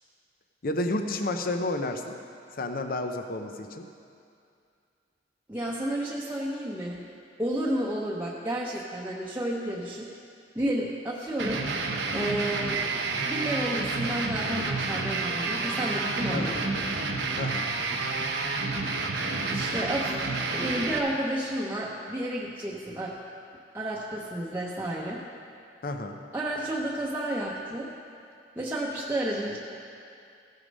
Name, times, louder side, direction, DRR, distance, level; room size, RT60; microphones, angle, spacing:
voice 1, 0.6-2.2 2.6-3.9 16.3-16.7 17.4-17.7 25.8-26.2, left 2 dB, 50° left, 6 dB, 0.6 m, -31 dB
voice 2, 5.5-7.0 7.4-10.1 10.5-11.6 12.1-12.8 13.3-16.7 19.5-20.2 20.5-23.1 23.7-25.2 26.3-27.9 28.6-29.6, right 1 dB, 10° right, -5 dB, 0.8 m, -31 dB
sound 1, 11.4-21.0, right 3 dB, 70° right, 0.9 m, -29 dB
15.0 x 6.6 x 5.3 m, 2.4 s
head